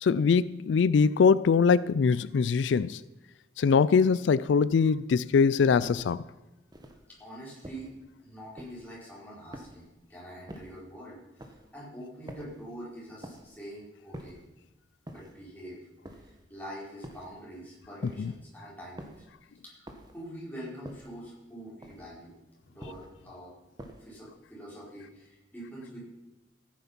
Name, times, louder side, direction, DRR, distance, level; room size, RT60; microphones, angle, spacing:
voice 1, 0.0-3.0 3.6-6.2, left 5 dB, 90° left, 0.4 m, -22 dB
sound 1, 5.8-6.2 6.7-7.1 7.6-8.0 8.6-9.0 9.5-10.0 10.5-10.9 11.4-11.7 12.3-12.7 13.2-13.6 14.1-14.5 15.1-15.5 16.0-16.5 17.0-17.4 18.0-18.4 19.0-19.3 19.9-20.3 20.8-21.2 21.8-22.2 22.8-23.2 23.8-24.2, right 1 dB, 25° right, 1.3 m, -47 dB
voice 2, 7.1-7.9 8.2-14.4 15.1-19.2 19.6-22.4 22.7-23.5 24.0-26.0, equal, 10° left, 4.8 m, -45 dB
14.5 x 9.3 x 5.8 m
head